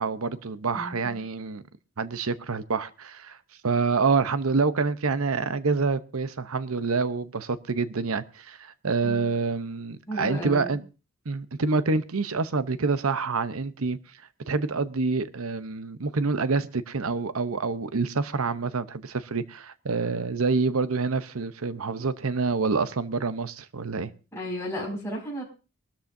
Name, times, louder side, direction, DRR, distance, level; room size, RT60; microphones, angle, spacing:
voice 1, 0.0-1.6 2.0-3.4 3.6-10.8 11.3-14.0 14.5-24.1, right 4 dB, 70° right, 0.8 m, -27 dB
voice 2, 0.7-1.2 9.0-9.3 10.1-10.8 24.3-25.4, equal, 15° left, 5.7 m, -34 dB
22.5 x 13.0 x 2.7 m
head